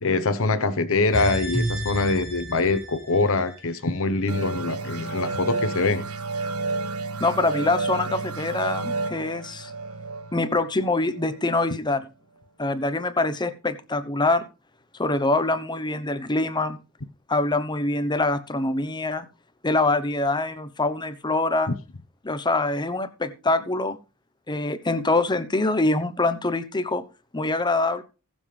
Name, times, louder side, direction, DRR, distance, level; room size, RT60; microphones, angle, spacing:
voice 1, 0.0-6.0 21.7-21.8, left 3 dB, 65° left, 10 dB, 1.1 m, -24 dB
sound 1, 1.1-4.4 4.7-4.8, right 1 dB, 45° right, 4.4 m, -32 dB
sound 2, 4.3-11.5, right 3 dB, 85° right, 1.4 m, -31 dB
voice 2, 7.2-9.7 10.3-12.1 12.6-14.5 15.0-16.8 17.3-19.3 19.6-21.7 22.2-24.0 24.5-27.0 27.3-28.0, left 2 dB, 20° left, 11 dB, 1.0 m, -24 dB
20.5 x 7.3 x 3.4 m, 0.32 s
head